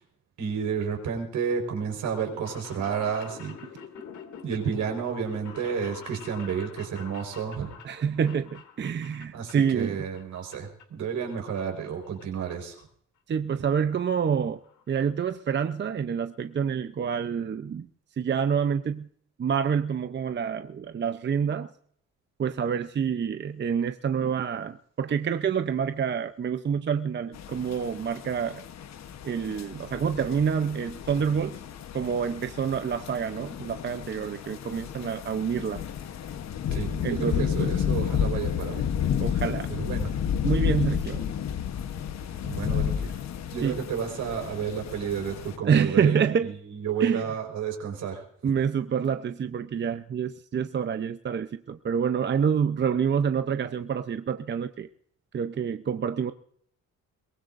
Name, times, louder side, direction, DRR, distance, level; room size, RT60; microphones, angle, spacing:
voice 1, 0.4-3.5 4.4-7.7 9.3-12.8 36.7-38.8 39.8-40.1 42.4-42.9 43.5-46.2 46.5-48.2, right 7 dB, 75° right, 3 dB, 4.7 m, -31 dB
sound 1, 2.3-9.9 10.1-10.8 11.2-12.2 12.5-12.6 13.5-13.6 13.8-13.9 14.2-14.3 14.5-14.8 15.2-15.3 15.5-15.6, left 7 dB, 75° left, 2.5 m, -47 dB
voice 2, 7.8-10.0 13.3-14.6 14.9-17.9 18.2-19.1 19.4-21.7 22.4-28.6 29.2-31.6 31.9-35.8 37.0-37.8 39.2-39.7 40.4-41.2 43.6-43.8 45.6-46.5 47.0-47.3 48.4-54.9 55.3-56.3, right 7 dB, 35° right, 9 dB, 0.7 m, -27 dB
sound 2, 27.3-45.6, left 8 dB, 60° left, 1.1 m, -31 dB
22.5 x 18.5 x 2.6 m, 0.62 s
cardioid pair, 90°, 30 cm